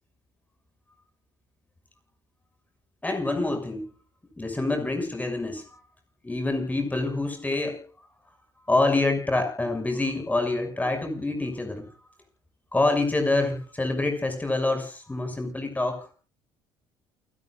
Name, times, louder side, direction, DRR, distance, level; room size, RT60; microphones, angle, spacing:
voice 1, 3.0-3.9 4.4-5.8 6.2-7.9 8.7-11.9 12.7-16.1, left 2 dB, 15° left, 5 dB, 6.4 m, -26 dB
29.0 x 12.5 x 2.5 m, 0.36 s
supercardioid pair, 75°, 11 cm